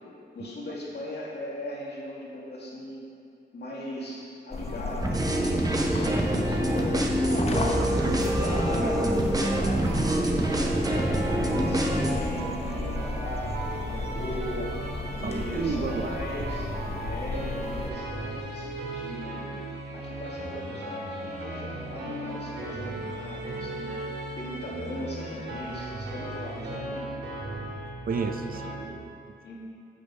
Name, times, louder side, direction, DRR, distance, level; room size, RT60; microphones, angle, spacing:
voice 1, 0.3-3.1 3.5-7.3 7.7-11.2 11.5-14.8 15.1-16.7 17.0-19.5 19.9-27.2 29.4-29.6, left 1 dB, 70° left, -5 dB, 2.0 m, -38 dB
sound 1, 4.5-17.9, left 2 dB, 35° left, 0.7 m, -34 dB
sound 2, 5.0-12.1, right 1 dB, 20° right, 0.8 m, -25 dB
voice 2, 7.5-8.2 15.2-16.2 28.1-29.2, right 4 dB, 55° right, 7 dB, 0.5 m, -32 dB
sound 3, 9.8-28.8, right 1 dB, 80° right, 2.3 m, -36 dB
7.8 x 6.4 x 5.4 m, 2.4 s
wide cardioid pair, 115°, 18 cm